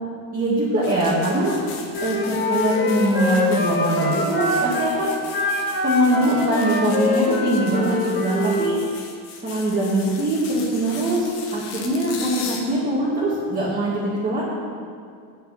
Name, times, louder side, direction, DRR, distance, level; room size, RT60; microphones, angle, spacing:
voice 1, 0.3-1.6 2.0-5.2 5.8-8.8 9.4-14.4, right 1 dB, 20° right, -7 dB, 1.7 m, -22 dB
sound 1, 0.8-12.6, left 5 dB, 90° left, 1.8 m, -38 dB
Wind instrument woodwind instrument, 1.9-4.9 5.3-8.7, left 2 dB, 30° left, 1.7 m, -24 dB
9.1 x 6.2 x 8.4 m, 2.2 s
cardioid pair, 160°, 40 cm